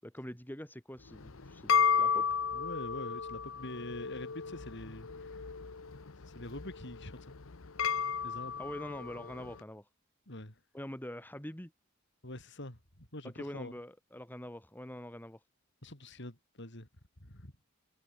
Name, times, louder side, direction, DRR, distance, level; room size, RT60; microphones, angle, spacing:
voice 1, 0.0-2.4 8.6-9.9 10.7-11.7 13.2-15.4, equal, 10° left, 3.2 m, -44 dB
sound 1, 1.1-9.6, left 6 dB, 85° left, 1.0 m, -34 dB
voice 2, 2.5-5.5 6.2-7.3 8.2-8.6 10.3-10.6 12.2-13.7 15.8-16.9 17.2-17.5, left 1 dB, 60° left, 5.0 m, -45 dB
head